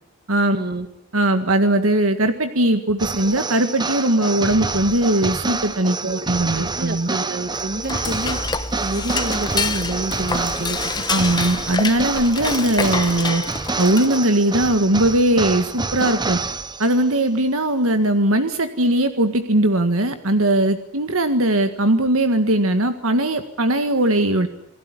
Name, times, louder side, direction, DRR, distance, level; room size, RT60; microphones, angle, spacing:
voice 1, 0.5-0.9 6.0-6.3 6.6-8.4 8.8-11.0, right 1 dB, 45° right, 9 dB, 2.3 m, -28 dB
voice 2, 1.1-7.1 10.4-10.5 11.1-13.4 13.8-16.4 16.8-24.5, right 1 dB, 65° right, 8 dB, 1.8 m, -19 dB
sound 1, 3.0-17.1, right 3 dB, 20° right, 1.0 m, -28 dB
Dishes pots and pans / Cutlery silverware, 7.5-14.4, left 4 dB, 20° left, 1.2 m, -27 dB
28.5 x 19.5 x 9.8 m, 0.75 s
head